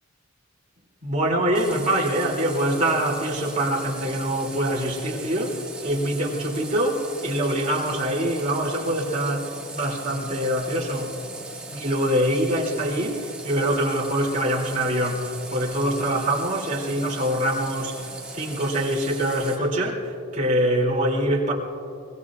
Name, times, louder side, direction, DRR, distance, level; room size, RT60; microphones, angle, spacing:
voice 1, 1.0-11.1 11.7-21.5, right 1 dB, 35° right, -3 dB, 2.9 m, -24 dB
Water tap faucet, 1.5-19.6, right 3 dB, 5° right, 2.4 m, -39 dB
24.5 x 23.0 x 2.5 m, 2.4 s
head